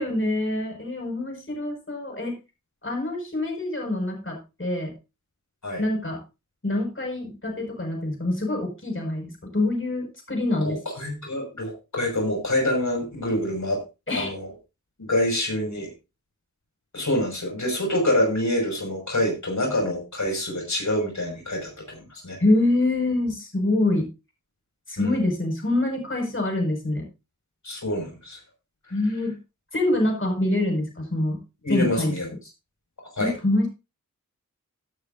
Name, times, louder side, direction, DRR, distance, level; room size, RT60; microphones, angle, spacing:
voice 1, 0.0-2.4 2.8-4.9 5.8-6.2 6.6-10.8 14.1-14.3 22.4-24.1 24.9-27.1 28.9-29.4 29.7-31.4 31.7-32.1 33.2-33.7, left 2 dB, 40° left, 1 dB, 6.1 m, -25 dB
voice 2, 10.6-13.8 14.1-14.5 15.0-15.9 16.9-22.4 25.0-25.2 27.6-28.4 31.6-32.3 33.1-33.3, left 1 dB, 65° left, 1 dB, 6.1 m, -26 dB
17.0 x 9.2 x 2.7 m, 0.28 s
wide cardioid pair, 50°, 31 cm